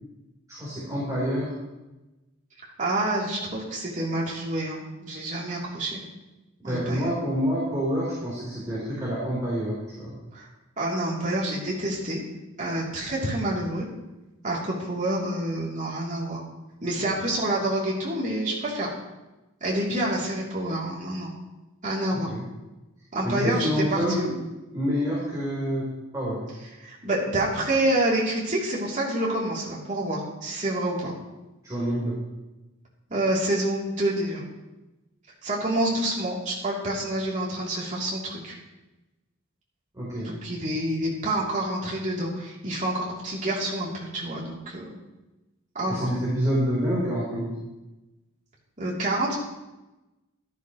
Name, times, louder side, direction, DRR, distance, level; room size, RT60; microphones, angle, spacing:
voice 1, 0.5-1.6 6.6-10.1 22.1-22.5 23.2-24.4 24.7-26.5 31.6-32.2 39.9-40.4 45.9-47.5, equal, 15° right, -8 dB, 4.1 m, -27 dB
voice 2, 2.8-6.0 6.6-7.1 10.3-10.5 10.8-12.2 12.6-13.9 14.4-16.4 16.8-18.9 19.6-21.3 21.8-22.3 23.1-24.3 26.8-31.1 33.1-34.4 35.4-38.6 40.2-44.9 45.7-46.1 48.8-49.4, right 1 dB, 40° right, -5 dB, 3.2 m, -28 dB
16.5 x 12.0 x 3.2 m, 1.0 s
head